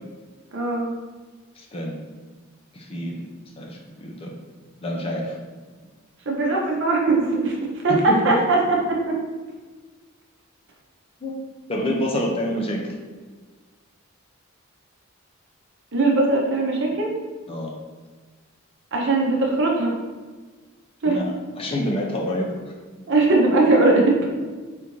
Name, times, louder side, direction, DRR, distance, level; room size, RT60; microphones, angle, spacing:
voice 1, 0.5-0.9 6.3-7.6 7.8-9.2 15.9-17.1 18.9-19.9 21.0-21.2 23.1-24.2, right 2 dB, 60° right, -1 dB, 0.7 m, -20 dB
voice 2, 1.6-2.0 2.7-3.3 3.6-4.3 4.8-5.4 7.9-8.0 8.2-8.3 11.2-11.3 11.7-12.9 17.5-17.7 21.1-22.5, left 1 dB, 25° left, -1 dB, 0.5 m, -27 dB
3.6 x 2.6 x 2.9 m, 1.4 s
head